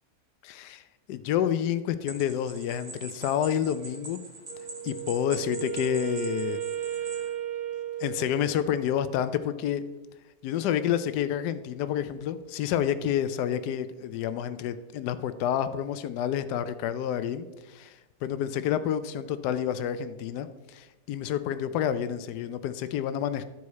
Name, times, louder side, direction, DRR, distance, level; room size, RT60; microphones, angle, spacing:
voice 1, 0.4-0.8 1.1-4.2 4.8-6.6 8.0-9.8 10.4-17.9 18.2-23.4, left 10 dB, 85° left, 12 dB, 1.2 m, -29 dB
sound 1, 2.1-7.3, right 2 dB, 65° right, 1.9 m, -43 dB
Wind instrument woodwind instrument, 4.5-8.8, right 10 dB, 80° right, 1.4 m, -35 dB
12.0 x 4.7 x 4.1 m, 1.1 s
omnidirectional pair, 1.7 m